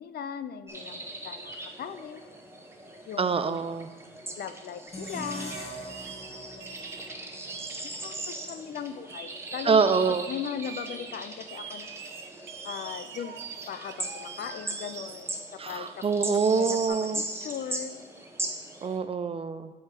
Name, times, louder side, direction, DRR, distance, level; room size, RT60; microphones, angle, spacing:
voice 1, 0.0-2.2 3.1-3.7 4.4-5.6 6.5-6.8 7.8-11.9 12.6-13.4 13.7-16.1 16.5-18.0, left 8 dB, 55° left, 12 dB, 0.4 m, -38 dB
sound 1, 0.7-19.0, right 2 dB, 10° right, 0.9 m, -40 dB
voice 2, 3.2-3.9 9.6-10.3 15.6-17.2 18.8-19.7, right 5 dB, 30° right, 11 dB, 0.4 m, -25 dB
sound 2, 4.9-8.1, equal, 30° left, 2.5 m, -42 dB
sound 3, 5.5-5.6 5.9-6.3 6.6-7.1 7.5-7.8 8.2-8.3 9.1-9.6 9.9-10.3 10.6-11.1 11.5-15.2 15.6-16.9, right 7 dB, 65° right, 0.7 m, -44 dB
7.7 x 4.5 x 4.4 m, 1.3 s
cardioid pair, 90°, 20 cm